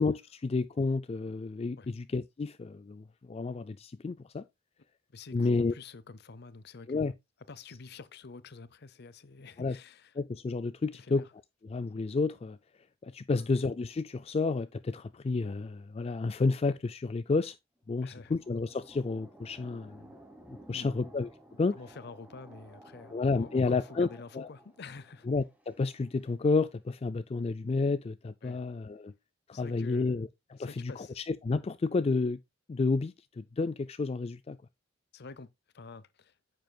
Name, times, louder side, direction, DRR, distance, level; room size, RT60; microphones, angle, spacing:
voice 1, 0.0-4.4 5.3-5.7 6.9-7.1 9.6-9.8 10.2-11.2 11.7-12.6 13.0-17.6 17.9-20.0 20.7-21.3 21.6-21.8 23.1-24.1 24.3-24.5 25.3-29.1 29.5-32.4 32.7-34.6, left 3 dB, 30° left, 0.4 m, -30 dB
voice 2, 5.1-7.1 7.5-10.1 10.9-11.3 13.3-13.5 18.0-18.4 19.5-19.7 20.7-21.0 21.7-25.3 28.4-28.6 29.5-30.2 30.6-31.2 35.1-36.3, left 4 dB, 60° left, 0.7 m, -48 dB
sound 1, 17.8-26.3, right 1 dB, 10° right, 1.3 m, -54 dB
9.2 x 7.6 x 2.3 m
head